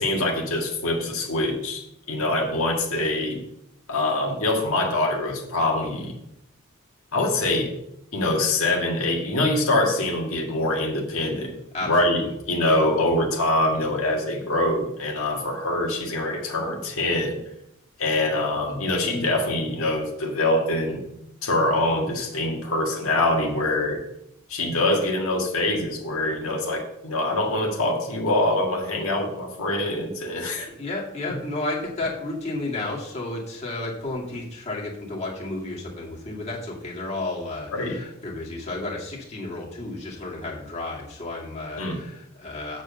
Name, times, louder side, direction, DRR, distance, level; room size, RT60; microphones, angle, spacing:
voice 1, 0.0-3.4 3.9-6.1 7.1-7.7 8.1-11.5 11.9-17.4 18.0-21.0 21.4-24.0 24.5-30.7 31.3-31.4 37.7-38.0 41.8-42.0, left 1 dB, 75° left, 0 dB, 1.8 m, -24 dB
voice 2, 11.7-12.3 30.7-42.8, left 2 dB, 30° left, -3 dB, 2.2 m, -32 dB
7.2 x 6.3 x 6.9 m, 0.81 s
head